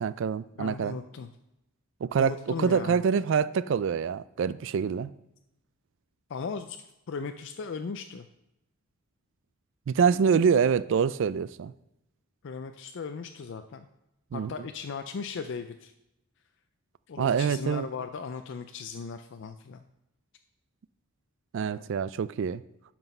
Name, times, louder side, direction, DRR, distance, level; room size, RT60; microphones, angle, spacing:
voice 1, 0.0-1.0 2.0-5.1 9.9-11.7 14.3-14.7 17.2-17.9 21.5-22.6, right 6 dB, 55° right, 0.3 m, -26 dB
voice 2, 0.6-1.3 2.2-3.0 6.3-6.8 7.1-8.3 12.4-13.9 14.3-15.9 17.1-19.8, left 5 dB, 55° left, 0.4 m, -37 dB
9.2 x 6.0 x 5.5 m
head